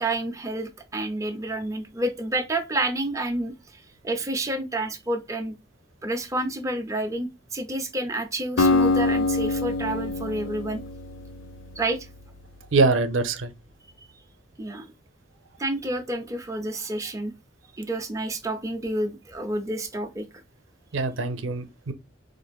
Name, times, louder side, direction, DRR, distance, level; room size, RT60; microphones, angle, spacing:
voice 1, 0.0-5.5 6.0-10.8 11.8-12.1 14.6-14.9 15.6-17.3 17.8-20.3, right 1 dB, 15° right, 0.6 m, -29 dB
Acoustic guitar, 8.6-12.7, left 2 dB, 80° left, 0.6 m, -25 dB
voice 2, 12.7-13.5 20.9-21.9, right 3 dB, 85° right, 0.5 m, -23 dB
4.2 x 2.6 x 2.3 m
head